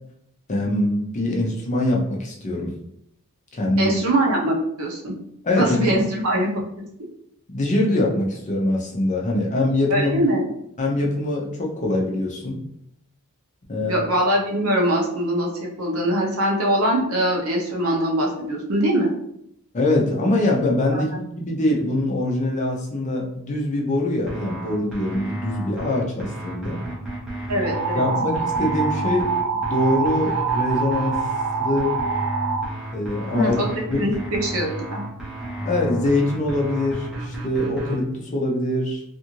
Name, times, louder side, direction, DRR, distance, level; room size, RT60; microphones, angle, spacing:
voice 1, 0.5-2.7 3.5-3.9 5.4-5.9 7.5-10.1 10.8-12.6 13.7-14.0 19.7-26.8 27.9-29.3 29.7-31.2 31.6-32.0 32.9-33.6 33.9-34.1 35.6-39.0, left 1 dB, 35° left, -1 dB, 0.5 m, -23 dB
voice 2, 3.8-5.2 5.6-6.8 9.9-10.5 13.8-19.1 20.9-21.0 27.5-28.0 33.3-35.1, right 1 dB, 70° right, -1 dB, 0.7 m, -22 dB
sound 1, 24.3-38.0, right 1 dB, 5° right, 0.7 m, -32 dB
sound 2, 27.6-32.7, right 5 dB, 55° right, 0.3 m, -25 dB
2.6 x 2.4 x 2.9 m, 0.74 s
head